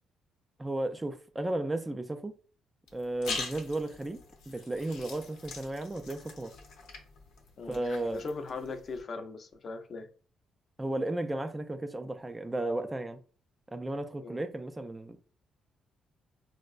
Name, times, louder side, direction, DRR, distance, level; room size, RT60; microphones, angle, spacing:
voice 1, 0.6-2.3 2.9-4.2 4.5-6.5 7.7-8.3 10.8-13.2 13.7-15.2, right 2 dB, 15° right, 0.3 m, -34 dB
sound 1, 2.9-9.0, left 4 dB, 85° left, 0.7 m, -43 dB
voice 2, 8.1-10.1 14.2-14.4, left 3 dB, 50° left, 0.5 m, -39 dB
4.3 x 2.1 x 2.4 m
cardioid pair, 90°, 0 cm